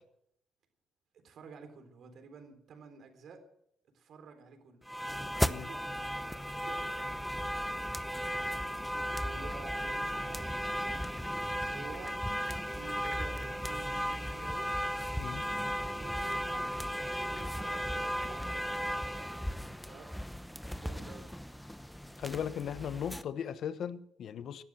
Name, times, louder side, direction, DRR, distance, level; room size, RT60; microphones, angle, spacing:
voice 1, 1.2-3.4 3.9-4.9 5.7-6.1 6.6-7.1 9.2-12.2 12.7-14.7 15.4-19.5 19.8-20.1 20.8-21.3, right 5 dB, 65° right, 7 dB, 3.8 m, -51 dB
sound 1, 4.9-23.2, equal, ahead, 0.8 m, -36 dB
voice 2, 22.2-24.6, left 8 dB, 65° left, 13 dB, 1.1 m, -37 dB
18.0 x 11.5 x 6.4 m, 0.71 s
cardioid pair, 90°, 0 cm